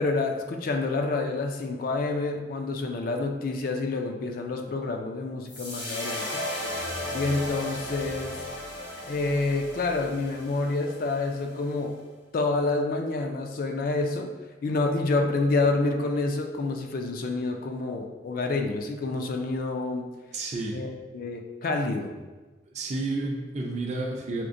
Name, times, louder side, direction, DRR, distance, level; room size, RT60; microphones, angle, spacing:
voice 1, 0.0-6.4 7.1-8.4 9.0-12.0 12.3-14.3 14.6-20.1 20.7-22.1, left 3 dB, 55° left, 4 dB, 0.3 m, -28 dB
sound 1, 5.5-11.8, left 1 dB, 80° left, 1.3 m, -36 dB
voice 2, 20.3-20.8 22.7-24.5, right 2 dB, 40° right, 0 dB, 0.5 m, -31 dB
5.8 x 2.1 x 2.5 m, 1.2 s
head